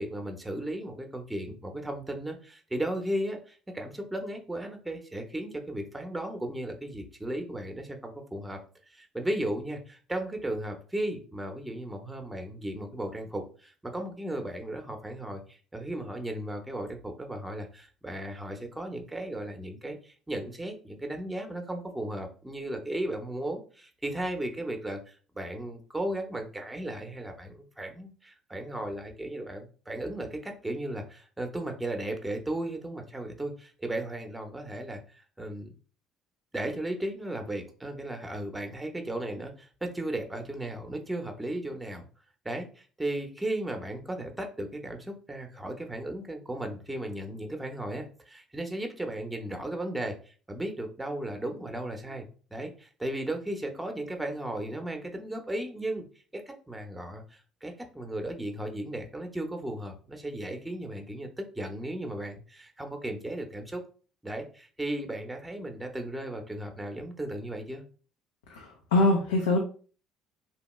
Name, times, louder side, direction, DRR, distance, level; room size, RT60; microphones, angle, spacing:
voice 1, 0.0-8.6 8.9-35.0 35.4-35.7 36.5-42.0 42.4-52.3 52.5-56.0 56.3-63.8 64.2-67.8, right 1 dB, 10° right, 4 dB, 0.7 m, -35 dB
voice 2, 68.5-69.6, left 2 dB, 85° left, 1 dB, 0.5 m, -24 dB
2.9 x 2.1 x 3.0 m, 0.39 s
hypercardioid pair, 65°, 0 cm